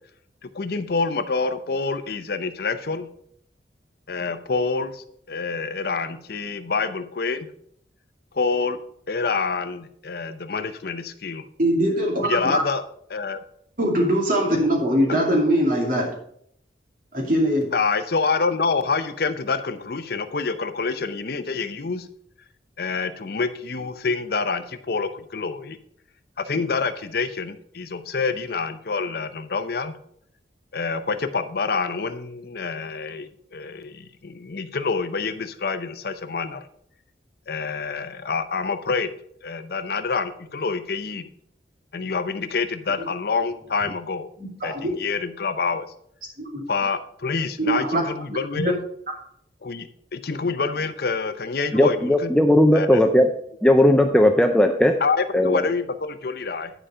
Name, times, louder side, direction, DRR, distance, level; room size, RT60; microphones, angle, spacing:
voice 1, 0.4-3.1 4.1-7.5 8.3-8.8 9.1-11.4 12.2-12.8 13.1-13.4 17.7-22.1 22.8-25.8 26.4-30.0 30.7-36.6 37.5-39.1 39.4-41.3 41.9-44.3 44.6-45.9 46.7-48.8 49.6-53.0 55.0-56.7, left 4 dB, 60° left, 11 dB, 0.6 m, -27 dB
voice 2, 11.6-12.6 13.8-16.1 17.1-17.7 43.0-43.1 44.4-44.9 46.4-46.6 47.6-48.0, right 1 dB, 50° right, 0 dB, 2.6 m, -22 dB
voice 3, 51.7-53.3 53.6-54.9 55.3-55.7, left 1 dB, 5° left, 5 dB, 0.5 m, -17 dB
10.0 x 5.0 x 5.5 m, 0.68 s
head